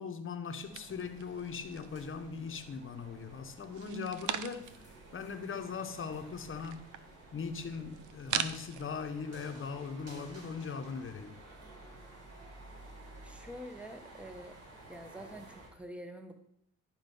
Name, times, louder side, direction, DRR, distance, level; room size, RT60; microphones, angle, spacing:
voice 1, 0.0-4.7 5.1-6.8 7.3-11.4, left 5 dB, 45° left, 1.2 m, -40 dB
sound 1, 0.6-15.7, right 2 dB, 55° right, 4.1 m, -53 dB
sound 2, 0.7-2.0 2.4-3.1 3.6-4.9 5.3-5.4 5.5-8.8, right 10 dB, 75° right, 0.7 m, -40 dB
voice 2, 13.2-14.6 14.9-16.3, equal, 5° right, 1.3 m, -46 dB
11.0 x 5.2 x 5.5 m
cardioid pair, 90°, 30 cm